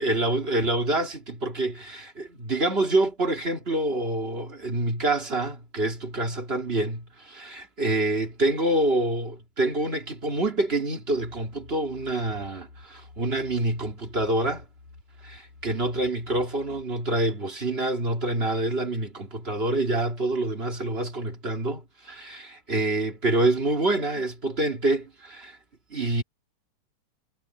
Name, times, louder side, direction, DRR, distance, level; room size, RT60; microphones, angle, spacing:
voice 1, 0.0-14.6 15.2-25.6 25.9-26.2, right 2 dB, 20° right, 2.6 m, -26 dB
sound 1, 11.1-16.8, left 3 dB, 85° left, 8.3 m, -51 dB
omnidirectional pair, 3.4 m